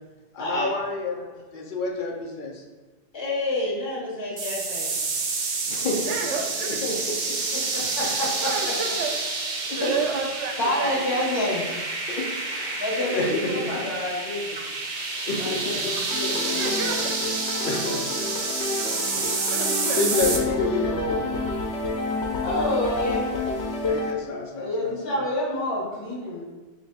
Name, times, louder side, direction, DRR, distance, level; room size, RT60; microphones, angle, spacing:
voice 1, 0.3-2.6 5.7-6.1 6.8-7.4 9.7-9.8 12.1-13.9 15.3-15.9 17.6-18.2 19.9-21.3 23.9-25.2, left 3 dB, 55° left, 0 dB, 0.7 m, -29 dB
voice 2, 3.1-5.0 7.7-8.9 9.8-9.9 10.6-11.7 12.8-14.6 15.4-17.0 22.4-23.3 24.5-26.4, left 1 dB, 25° left, -5 dB, 1.1 m, -28 dB
sound 1, 4.4-20.4, right 3 dB, 55° right, 0.6 m, -29 dB
voice 3, 6.1-6.9 8.4-9.1 9.8-11.3 14.6-14.7 15.0-15.1 15.5-15.6 16.0-17.2 18.8-19.0 19.2-20.2, right 4 dB, 80° right, 3 dB, 0.9 m, -32 dB
sound 2, 16.1-24.1, left 3 dB, 75° left, 0.9 m, -29 dB
3.3 x 3.0 x 4.0 m, 1.2 s
omnidirectional pair, 1.2 m